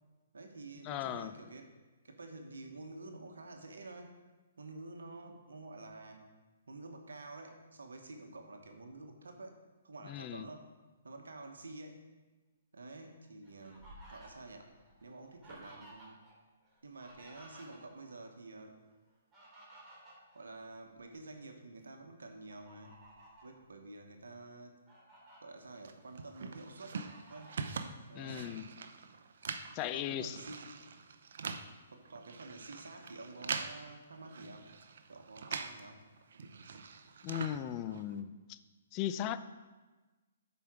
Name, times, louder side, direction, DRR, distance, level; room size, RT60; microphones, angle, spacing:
voice 1, 0.3-1.7 2.0-4.2 4.6-6.3 6.7-9.6 9.8-10.7 11.0-12.1 12.7-14.7 15.0-16.2 16.8-18.8 20.3-23.0 23.4-24.7 25.4-27.0 27.3-27.6 28.1-28.6 29.8-30.8 31.9-34.7 35.1-36.0, right 2 dB, 80° right, 4 dB, 1.2 m, -49 dB
voice 2, 0.8-1.3 10.0-10.5 28.1-28.7 29.7-30.4 37.2-38.6 38.9-39.4, left 11 dB, 30° left, 12 dB, 0.4 m, -37 dB
Fowl, 13.0-16.3 16.6-18.2 19.1-21.2 21.6-21.8 22.5-23.5 24.2-24.3 24.6-25.4 25.9-26.6 27.1-27.8, right 1 dB, 15° right, 3.2 m, -57 dB
sound 1, 25.8-35.9 36.1-38.2, right 5 dB, 65° right, 0.7 m, -44 dB
8.2 x 5.1 x 6.0 m, 1.2 s
hypercardioid pair, 135°, 0 cm